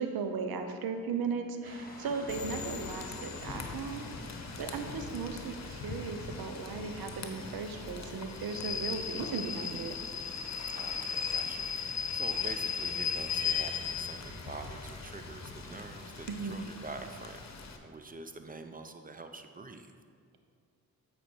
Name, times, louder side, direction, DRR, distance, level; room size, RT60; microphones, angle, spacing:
voice 1, 0.0-4.1 4.6-9.9 16.3-16.6, right 5 dB, 80° right, 7 dB, 0.7 m, -36 dB
sound 1, 1.6-7.1, left 1 dB, 25° left, 1.5 m, -51 dB
Rain / Train, 2.3-17.8, left 6 dB, 50° left, 0.9 m, -38 dB
voice 2, 4.6-4.9 10.7-17.5 17.8-19.9, right 3 dB, 25° right, 7 dB, 0.7 m, -46 dB
sound 2, 9.8-16.2, equal, 5° right, 1.1 m, -53 dB
8.3 x 4.4 x 4.5 m, 2.1 s
supercardioid pair, 45°, 36 cm